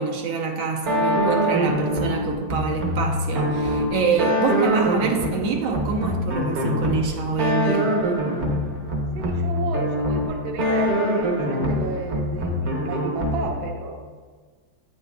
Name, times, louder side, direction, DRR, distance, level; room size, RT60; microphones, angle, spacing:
voice 1, 0.0-8.0, right 5 dB, 90° right, 1 dB, 1.6 m, -25 dB
sound 1, 0.9-13.8, equal, 55° right, 0.8 m, -24 dB
voice 2, 9.1-14.1, right 4 dB, 70° right, 3 dB, 1.3 m, -32 dB
8.2 x 6.3 x 2.2 m, 1.5 s
omnidirectional pair, 2.2 m